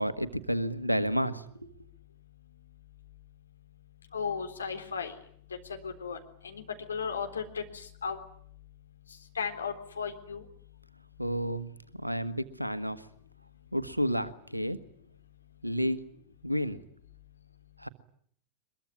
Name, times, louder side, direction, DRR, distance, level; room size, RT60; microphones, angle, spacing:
voice 1, 0.0-1.4 11.2-11.7 12.0-13.0 13.7-14.8 15.6-16.0 16.4-16.8 17.8-17.9, equal, 90° right, 13 dB, 1.4 m, -30 dB
voice 2, 4.1-5.1 5.6-6.6 6.9-8.2 9.1-10.5, left 6 dB, 70° left, 5 dB, 3.7 m, -36 dB
23.5 x 22.0 x 9.6 m, 0.62 s
figure-of-eight pair, 90°, 0 cm